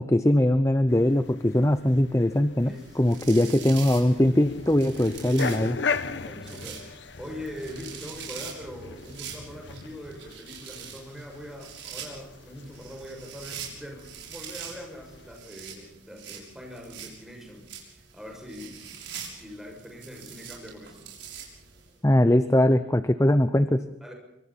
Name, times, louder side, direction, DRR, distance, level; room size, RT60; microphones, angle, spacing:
voice 1, 0.0-5.8 22.0-23.8, left 1 dB, 15° left, 11 dB, 0.8 m, -21 dB
sound 1, 0.9-15.4, left 5 dB, 65° left, 1.0 m, -39 dB
voice 2, 2.6-3.2 6.1-17.7 18.1-21.1 24.0-24.1, equal, ahead, 1 dB, 6.6 m, -42 dB
sound 2, 2.7-21.9, right 7 dB, 70° right, 6.6 m, -44 dB
26.0 x 24.5 x 4.3 m, 0.83 s
head